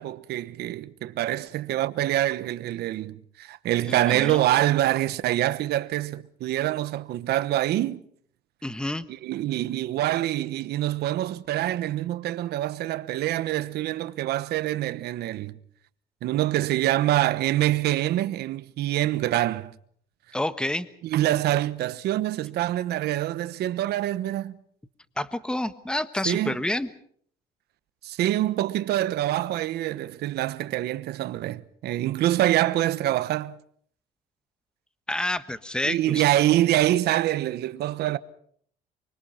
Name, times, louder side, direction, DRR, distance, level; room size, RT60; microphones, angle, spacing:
voice 1, 0.0-8.0 9.2-15.6 16.2-19.7 21.0-24.6 26.2-26.6 28.0-33.6 35.8-38.2, right 14 dB, 75° right, 1.2 m, -25 dB
voice 2, 3.9-4.4 8.6-9.0 20.3-20.9 25.2-26.9 35.1-36.2, left 1 dB, 5° left, 1.3 m, -28 dB
24.5 x 24.5 x 5.8 m
cardioid pair, 110°, 17 cm